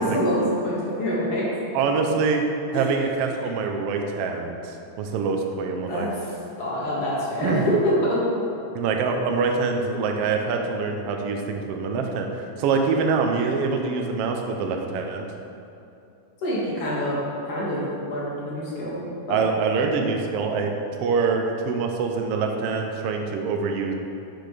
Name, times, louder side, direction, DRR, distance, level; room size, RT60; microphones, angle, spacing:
voice 1, 0.0-1.4 5.9-8.2 16.4-17.2 17.5-19.4, equal, 50° left, -6 dB, 2.7 m, -26 dB
voice 2, 1.7-2.4 2.7-6.1 7.4-7.6 8.7-15.3 19.3-20.7 21.0-23.9, right 4 dB, 80° right, 3 dB, 1.4 m, -25 dB
8.6 x 6.2 x 5.0 m, 2.8 s
omnidirectional pair, 3.7 m